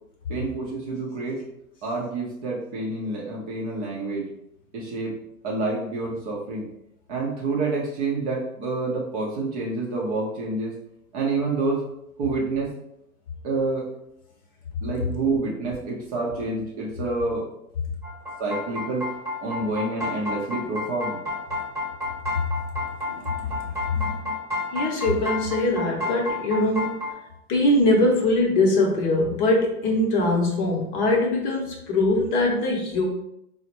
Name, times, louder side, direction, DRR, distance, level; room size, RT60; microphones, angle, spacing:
voice 1, 0.3-1.4 1.8-4.3 4.7-5.1 5.4-6.7 7.1-10.8 11.1-11.8 12.2-12.7 13.4-13.9 14.8-17.5 18.4-19.1 19.4-21.2 23.9-24.3, right 3 dB, 25° right, -3 dB, 0.6 m, -28 dB
sound 1, 18.0-27.1, left 2 dB, 10° right, 1.0 m, -31 dB
voice 2, 23.1-23.7 24.7-26.9 27.5-33.1, left 2 dB, 30° left, -1 dB, 0.8 m, -22 dB
4.0 x 2.1 x 2.9 m, 0.79 s
hypercardioid pair, 115°, 44 cm